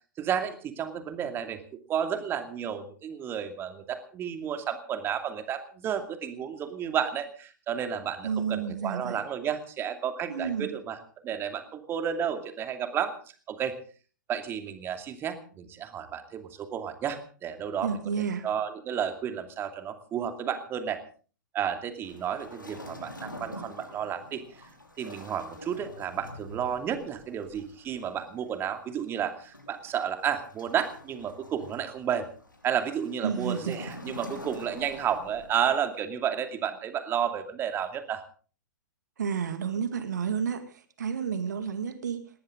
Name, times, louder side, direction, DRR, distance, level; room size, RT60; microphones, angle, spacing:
voice 1, 0.2-1.6 1.9-11.0 11.2-13.1 13.5-13.7 14.3-17.9 18.4-21.0 21.5-24.4 25.0-32.3 32.6-38.2, right 8 dB, 20° right, 8 dB, 2.5 m, -32 dB
voice 2, 8.2-9.2 10.3-10.7 17.8-18.5 33.2-33.8 39.2-42.4, right 6 dB, 65° right, 10 dB, 2.1 m, -31 dB
Waves surf, 22.0-35.7, left 1 dB, 90° left, 5.0 m, -46 dB
19.5 x 18.5 x 3.8 m, 0.40 s
figure-of-eight pair, 110°, 10 cm